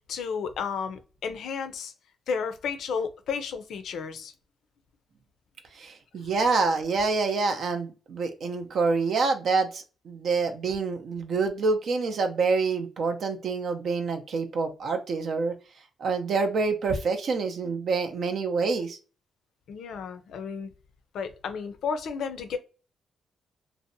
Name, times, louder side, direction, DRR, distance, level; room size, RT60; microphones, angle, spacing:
voice 1, 0.1-1.9 2.3-4.3 19.7-20.7 21.1-22.6, left 6 dB, 70° left, 0.4 m, -32 dB
voice 2, 5.7-15.5 16.0-19.0, right 4 dB, 60° right, 0.4 m, -27 dB
2.6 x 2.0 x 2.6 m
cardioid pair, 130°, 0 cm